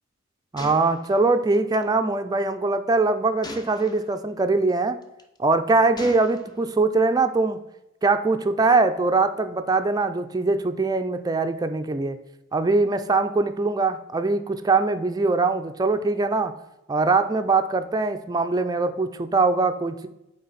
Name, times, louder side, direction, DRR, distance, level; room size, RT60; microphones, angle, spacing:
voice 1, 0.5-5.0 5.4-7.6 8.0-12.2 12.5-16.6 16.9-20.1, right 3 dB, 20° right, 8 dB, 0.4 m, -22 dB
Gunshot gunfire, 0.6-1.8 3.4-4.2 5.0-5.4 6.0-6.8, left 2 dB, 20° left, 0.7 m, -40 dB
8.4 x 3.4 x 4.0 m, 0.92 s
head